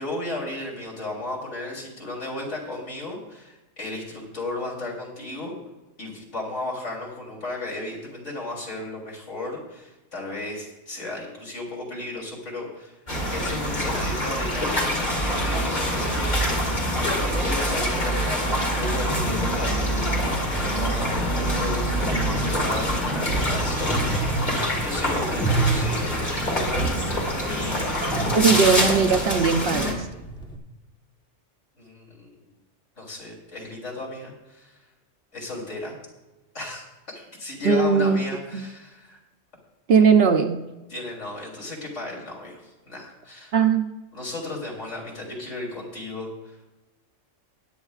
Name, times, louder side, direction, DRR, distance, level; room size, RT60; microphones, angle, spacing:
voice 1, 0.0-5.5 6.0-13.0 13.3-26.9 27.5-27.9 31.8-32.3 33.0-34.8 35.3-36.0 36.5-36.9 37.1-39.2 40.9-43.5 44.1-46.6, left 2 dB, 70° left, -3 dB, 3.6 m, -35 dB
sound 1, 13.1-29.9, equal, 35° left, 2.4 m, -25 dB
sound 2, 21.8-30.6, right 3 dB, 5° left, 1.0 m, -31 dB
voice 2, 28.2-30.1 37.6-38.2 38.5-38.6 39.9-40.6 43.5-43.9, right 6 dB, 60° right, 6 dB, 0.9 m, -19 dB
19.5 x 9.9 x 2.4 m, 1.1 s
omnidirectional pair, 1.3 m